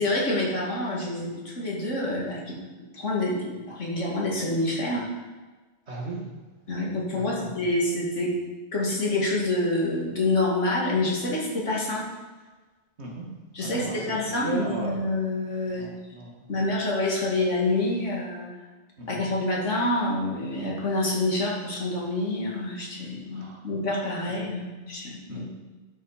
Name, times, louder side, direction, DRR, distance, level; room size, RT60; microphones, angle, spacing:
voice 1, 0.0-2.5 2.9-5.0 6.7-8.3 8.7-12.0 13.5-15.9 16.5-18.5 19.1-25.5, left 2 dB, 80° left, -3 dB, 2.6 m, -27 dB
voice 2, 5.9-6.3 7.1-7.5 13.0-13.3 13.6-15.0 15.8-16.5 19.0-19.2 23.3-23.6 25.3-25.5, right 2 dB, 65° right, -2 dB, 2.3 m, -36 dB
11.5 x 6.5 x 5.0 m, 1.3 s
omnidirectional pair, 1.2 m